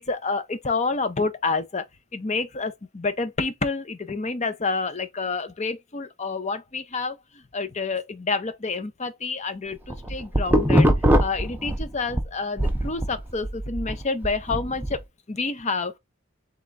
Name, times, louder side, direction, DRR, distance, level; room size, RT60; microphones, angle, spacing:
voice 1, 0.0-1.8 2.1-7.2 7.5-10.9 11.2-16.0, left 4 dB, 35° left, 0.7 m, -28 dB
sound 1, 9.7-12.3 12.6-15.0, equal, 10° right, 0.7 m, -21 dB
3.7 x 3.4 x 3.8 m
head